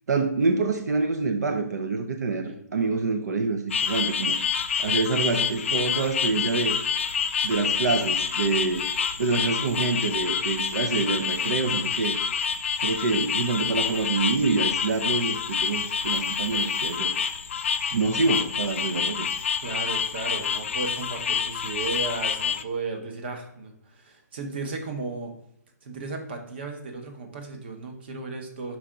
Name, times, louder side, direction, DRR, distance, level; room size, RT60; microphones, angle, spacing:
voice 1, 0.1-4.4 4.8-6.7 7.4-8.9 9.2-12.2 12.8-17.2 17.9-19.3, right 3 dB, 70° right, 7 dB, 0.6 m, -26 dB
sound 1, 3.7-22.6, left 7 dB, 45° left, 0.4 m, -27 dB
voice 2, 19.6-25.3 25.8-28.8, right 3 dB, 35° right, 4 dB, 1.0 m, -35 dB
5.9 x 4.7 x 3.7 m, 0.71 s
hypercardioid pair, 170°, 10 cm